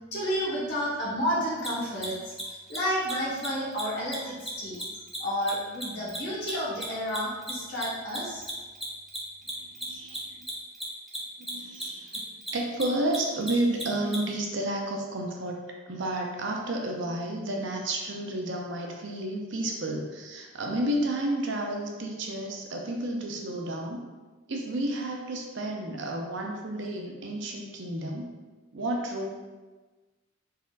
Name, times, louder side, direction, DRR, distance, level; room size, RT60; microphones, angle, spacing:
voice 1, 0.1-4.8 5.2-8.4, equal, 50° left, -6 dB, 1.2 m, -31 dB
Mechanisms, 1.6-1.7 2.0-2.1 2.3-2.4 2.7-2.8 3.0-3.1 3.4-3.5 3.7-3.8 4.1-6.8 7.1-14.2, equal, ahead, 0.5 m, -36 dB
voice 2, 9.5-10.3 11.4-24.0 24.5-28.3 28.7-29.3, right 1 dB, 55° right, 1 dB, 0.5 m, -31 dB
4.0 x 3.8 x 2.4 m, 1.3 s
head